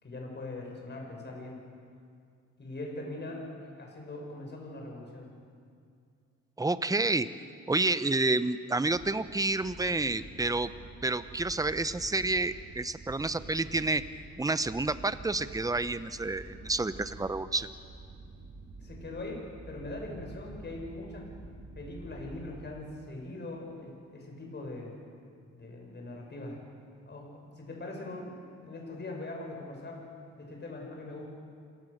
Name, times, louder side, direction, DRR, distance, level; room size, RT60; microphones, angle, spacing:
voice 1, 0.0-1.6 2.6-5.3 18.8-21.3 21.7-25.0 25.5-26.6 27.1-30.1 30.4-31.2, left 2 dB, 35° left, 1 dB, 6.0 m, -41 dB
voice 2, 6.6-7.3 7.7-10.7 11.0-14.0 14.4-17.7, right 2 dB, 10° right, 13 dB, 0.9 m, -29 dB
sound 1, 8.8-23.1, right 3 dB, 25° right, 3.0 m, -48 dB
27.5 x 19.0 x 6.7 m, 2.3 s
cardioid pair, 90°, 30 cm